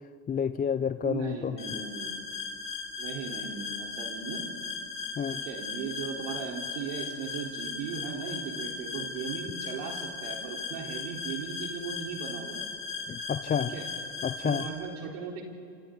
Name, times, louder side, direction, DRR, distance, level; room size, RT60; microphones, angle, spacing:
voice 1, 0.3-1.8 5.2-5.4 13.1-13.7 14.2-14.7, left 7 dB, 20° left, 12 dB, 0.4 m, -30 dB
voice 2, 1.0-2.2 3.0-4.4 5.3-12.6 13.7-13.9 14.4-15.4, right 6 dB, 75° right, 0 dB, 4.1 m, -37 dB
sound 1, 1.6-14.7, left 4 dB, 40° left, 5.8 m, -37 dB
28.0 x 27.0 x 4.0 m, 2.4 s
supercardioid pair, 95°, 48 cm